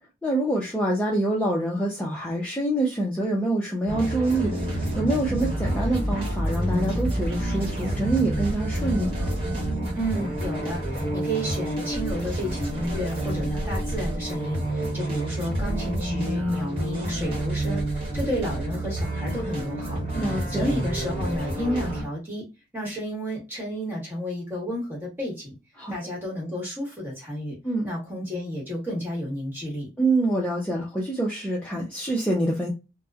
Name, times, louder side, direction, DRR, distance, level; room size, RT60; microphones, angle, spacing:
voice 1, 0.2-9.3 20.1-20.7 25.8-26.0 27.6-27.9 30.0-32.7, right 1 dB, 10° left, -4 dB, 0.5 m, -26 dB
sound 1, 3.9-22.0, right 1 dB, 30° right, 1.1 m, -28 dB
sound 2, 4.3-11.0, equal, 80° right, 0.8 m, -37 dB
voice 2, 9.9-22.5 22.7-25.5 25.9-27.6 27.8-29.9, equal, 10° right, -4 dB, 1.2 m, -31 dB
2.8 x 2.1 x 2.3 m, 0.26 s
head